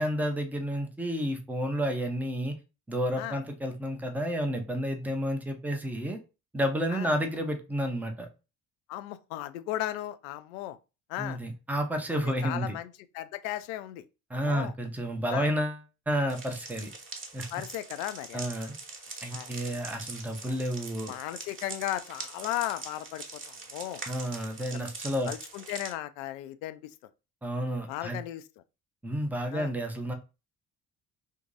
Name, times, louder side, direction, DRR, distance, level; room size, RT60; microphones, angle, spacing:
voice 1, 0.0-2.6 2.9-6.2 6.5-8.3 11.2-12.8 14.3-15.8 16.1-16.9 17.3-17.6 18.3-18.7 19.2-21.2 24.1-25.3 27.4-28.2 29.0-30.1, equal, 5° right, 0.6 m, -31 dB
voice 2, 8.9-10.8 11.1-11.4 12.3-14.0 14.3-14.7 15.3-15.5 17.5-18.5 19.3-19.8 20.5-20.6 21.1-24.0 24.7-24.9 25.3-26.8 27.9-28.4 29.5-29.7, left 14 dB, 60° left, 0.5 m, -36 dB
sound 1, 16.3-25.9, right 3 dB, 25° right, 1.1 m, -43 dB
2.9 x 2.6 x 3.7 m
figure-of-eight pair, 45°, 47 cm